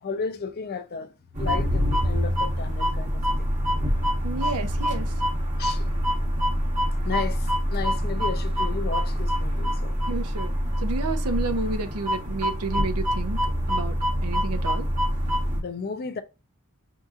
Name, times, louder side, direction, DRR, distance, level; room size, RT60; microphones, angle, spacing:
voice 1, 0.0-3.5 5.6-5.8 7.0-10.0 15.5-16.2, left 5 dB, 45° left, 0.5 m, -34 dB
sound 1, 1.3-15.6, equal, 35° right, 1.1 m, -25 dB
voice 2, 4.2-5.1 10.1-13.4 13.7-14.0 14.2-14.9, right 3 dB, 85° right, 0.6 m, -31 dB
5.3 x 2.8 x 2.4 m
head